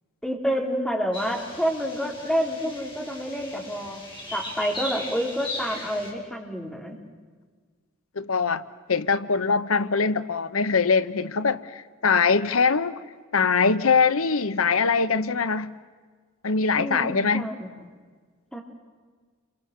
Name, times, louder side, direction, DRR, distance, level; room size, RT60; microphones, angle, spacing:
voice 1, 0.2-4.0 4.3-7.0 16.8-17.7 18.5-18.6, equal, 5° left, 0 dB, 4.0 m, -28 dB
sound 1, 1.1-6.1, left 1 dB, 25° left, 5.7 m, -38 dB
voice 2, 8.2-8.6 8.9-12.9 13.3-15.7 16.4-17.5, left 5 dB, 85° left, 14 dB, 0.9 m, -22 dB
29.5 x 25.0 x 6.8 m, 1.5 s
head